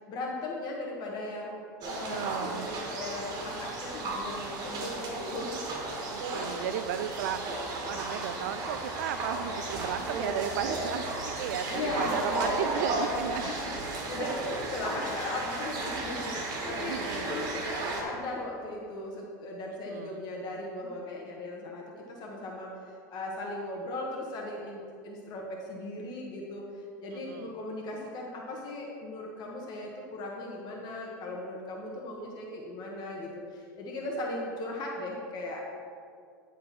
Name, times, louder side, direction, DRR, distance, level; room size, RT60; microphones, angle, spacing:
voice 1, 0.1-5.5 11.7-35.6, left 2 dB, 45° left, -1 dB, 1.4 m, -38 dB
sound 1, 1.8-18.0, right 2 dB, 45° right, 2.0 m, -34 dB
voice 2, 2.1-2.7 6.1-13.5 14.2-14.3 16.6-17.4 19.9-20.2 27.1-27.5, right 10 dB, 75° right, 12 dB, 0.5 m, -35 dB
10.5 x 4.0 x 5.8 m, 2.3 s
hypercardioid pair, 100°, 10 cm